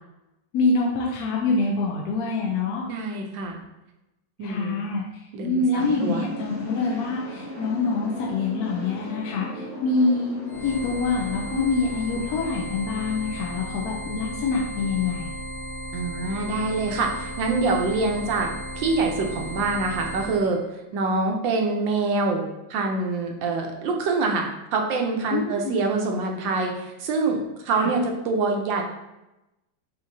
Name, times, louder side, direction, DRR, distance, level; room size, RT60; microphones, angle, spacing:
voice 1, 0.5-2.8 4.4-15.3 25.3-25.7 27.7-27.9, left 3 dB, 65° left, -2 dB, 1.0 m, -25 dB
voice 2, 2.9-3.6 4.4-4.8 5.3-6.2 15.9-20.6 20.9-22.4 22.7-24.5 24.7-28.8, right 3 dB, 80° right, 2 dB, 1.4 m, -25 dB
sound 1, 5.8-13.5, left 1 dB, 45° left, 1.8 m, -37 dB
sound 2, 10.5-20.4, equal, 85° left, 1.4 m, -35 dB
6.3 x 2.9 x 2.6 m, 0.95 s
omnidirectional pair, 2.1 m